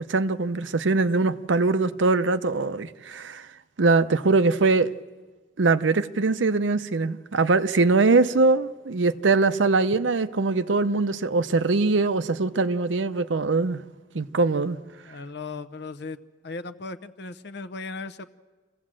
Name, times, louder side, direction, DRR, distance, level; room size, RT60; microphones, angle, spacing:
voice 1, 0.0-3.5 3.8-4.9 5.6-13.8 14.1-14.8, right 3 dB, 90° right, 0.7 m, -22 dB
voice 2, 15.0-16.2 16.4-18.2, left 3 dB, 65° left, 0.8 m, -37 dB
27.0 x 16.0 x 7.6 m
head